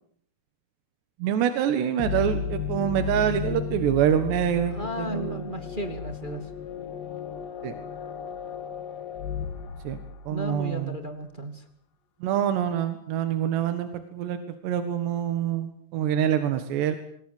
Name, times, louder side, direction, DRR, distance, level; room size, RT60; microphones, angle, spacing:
voice 1, 1.2-5.5 7.6-7.7 9.8-10.0 10.3-11.0 12.2-17.0, right 10 dB, 85° right, 9 dB, 3.7 m, -26 dB
sound 1, 2.0-10.6, left 8 dB, 85° left, 4.0 m, -34 dB
voice 2, 4.7-6.5 10.3-11.6, right 1 dB, 20° right, 6 dB, 1.3 m, -34 dB
25.0 x 22.0 x 8.0 m, 0.66 s
omnidirectional pair, 4.8 m